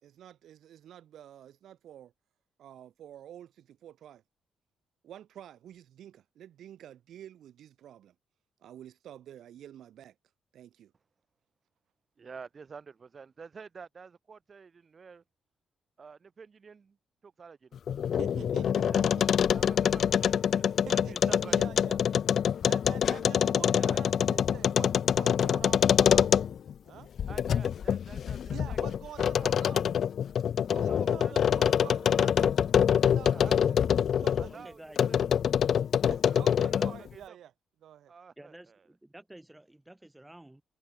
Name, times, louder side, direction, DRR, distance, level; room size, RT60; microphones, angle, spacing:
voice 1, 0.0-2.1 2.6-4.2 5.0-8.1 8.6-10.1 10.5-10.9 18.2-19.2 19.5-19.7 20.2-20.4 20.8-21.2 21.4-22.0 22.7-26.3 26.8-27.1 28.5-29.8 30.6-32.5 32.9-33.8 34.1-34.7 35.3-35.4 36.1-37.5 37.8-38.1, right 11 dB, 65° right, 3.5 m, -48 dB
voice 2, 12.2-15.2 16.0-17.0 17.2-17.7 18.9-19.0 19.5-21.7 22.6-22.7 23.4-24.0 25.5-25.6 27.3-29.0 29.4-29.6 30.9-32.2 32.9-33.6 34.4-35.2 36.3-37.4 38.1-38.8, right 5 dB, 30° right, 2.8 m, -49 dB
sound 1, 17.8-26.7 27.2-34.5 35.0-37.1, left 8 dB, 50° left, 0.3 m, -25 dB
voice 3, 34.5-35.0 36.6-37.0 38.4-40.6, right 1 dB, 5° right, 7.3 m, -51 dB
cardioid pair, 150°, 0 cm